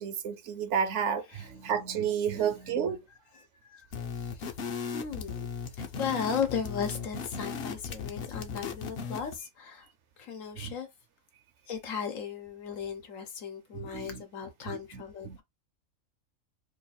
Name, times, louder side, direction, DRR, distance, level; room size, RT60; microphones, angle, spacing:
voice 1, 0.0-3.0 10.6-10.7 13.8-14.2 14.7-15.4, right 7 dB, 70° right, 0.9 m, -31 dB
voice 2, 3.3-3.9 4.2-4.5 4.9-5.5 5.8-9.9 10.2-10.9 11.7-15.4, left 7 dB, 90° left, 1.3 m, -36 dB
sound 1, 3.9-9.4, left 5 dB, 55° left, 0.8 m, -37 dB
3.1 x 2.4 x 4.1 m
omnidirectional pair, 1.3 m